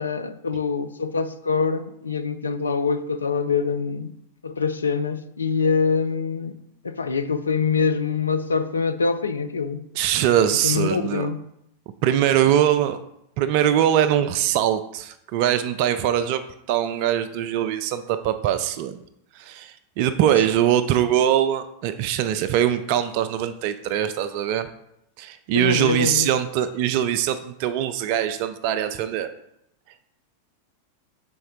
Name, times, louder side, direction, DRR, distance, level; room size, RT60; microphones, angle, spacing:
voice 1, 0.0-4.1 4.4-6.5 6.8-9.8 10.6-11.4 25.5-26.3, left 5 dB, 75° left, 9 dB, 0.4 m, -24 dB
voice 2, 9.9-11.3 12.0-13.0 13.4-16.4 16.7-19.0 19.3-24.7 25.2-29.3, right 10 dB, 45° right, 11 dB, 0.3 m, -22 dB
6.0 x 4.3 x 3.7 m, 0.77 s
figure-of-eight pair, 90°, 0 cm